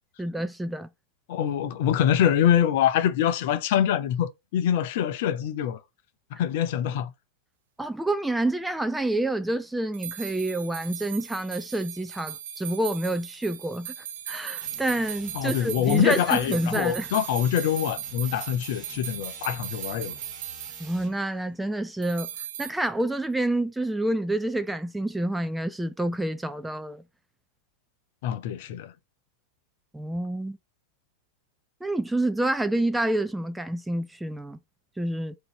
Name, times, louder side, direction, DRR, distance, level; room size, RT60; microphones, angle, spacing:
voice 1, 0.2-0.9 7.8-13.9 14.3-17.1 20.8-22.3 22.6-27.0 29.9-30.6 31.8-34.6 35.0-35.4, right 1 dB, 5° right, 0.4 m, -28 dB
voice 2, 1.3-5.8 6.3-7.1 15.3-20.1 28.2-28.9, left 10 dB, 50° left, 0.6 m, -24 dB
sound 1, 9.9-21.0 22.0-22.7, right 10 dB, 55° right, 0.6 m, -38 dB
sound 2, 14.6-21.2, right 3 dB, 20° right, 1.5 m, -49 dB
3.8 x 2.7 x 4.5 m
figure-of-eight pair, 90°, 0 cm